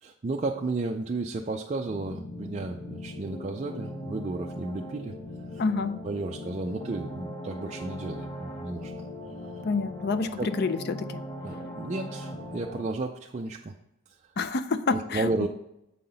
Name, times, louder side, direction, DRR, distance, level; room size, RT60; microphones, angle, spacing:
voice 1, 0.0-5.2 5.5-5.6 6.0-9.0 9.4-9.5 10.4-10.5 11.4-13.7 14.9-15.5, right 2 dB, 30° right, 1 dB, 0.4 m, -33 dB
sound 1, 1.9-12.8, left 1 dB, 15° left, 1.9 m, -39 dB
voice 2, 5.6-6.0 9.6-11.2 14.4-15.3, left 4 dB, 45° left, 13 dB, 0.4 m, -28 dB
7.6 x 5.7 x 4.0 m, 0.83 s
head